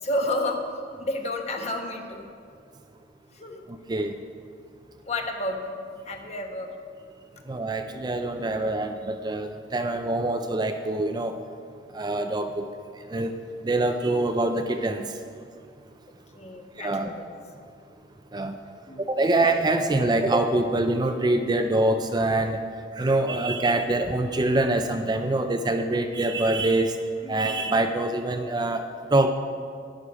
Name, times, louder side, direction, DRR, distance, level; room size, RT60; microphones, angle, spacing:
voice 1, 0.0-0.6 1.0-2.2 3.3-3.6 5.0-6.8 16.3-17.3 18.9-19.3 27.2-27.4, left 1 dB, 35° left, 3 dB, 1.1 m, -31 dB
voice 2, 7.5-11.4 11.9-12.7 13.1-13.3 13.6-15.1 16.8-17.1 18.3-18.6 19.0-22.6 23.0-26.9 27.3-29.3, right 2 dB, 20° right, 6 dB, 0.4 m, -24 dB
11.5 x 10.0 x 4.8 m, 2.2 s
head